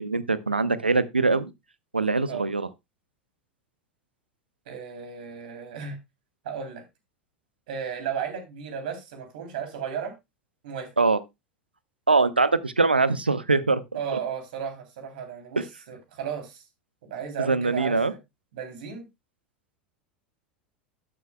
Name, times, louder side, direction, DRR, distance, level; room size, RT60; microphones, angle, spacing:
voice 1, 0.0-1.5 1.9-2.7 11.0-11.2 12.1-13.8 15.6-15.7 17.5-18.1, right 3 dB, 85° right, 0.6 m, -22 dB
voice 2, 4.7-6.0 6.4-6.8 7.7-10.1 10.6-10.9 13.9-16.6 17.1-18.2 18.5-19.1, right 7 dB, 60° right, 3.1 m, -34 dB
12.0 x 9.7 x 2.2 m
figure-of-eight pair, 80°, 5 cm